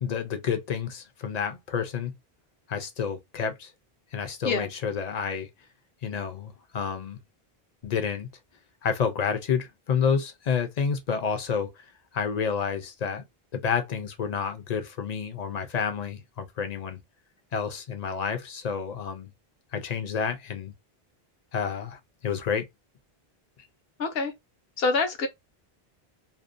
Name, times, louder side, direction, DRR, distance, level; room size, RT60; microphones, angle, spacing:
voice 1, 0.0-2.1 2.7-3.7 4.1-5.5 6.0-7.2 7.8-8.3 8.8-11.8 12.1-13.2 13.5-17.0 17.5-19.3 19.7-20.7 21.5-22.7, left 6 dB, 50° left, 0.5 m, -29 dB
voice 2, 24.0-24.3 24.8-25.3, left 4 dB, 70° left, 0.9 m, -25 dB
2.6 x 2.1 x 2.5 m
omnidirectional pair, 1.0 m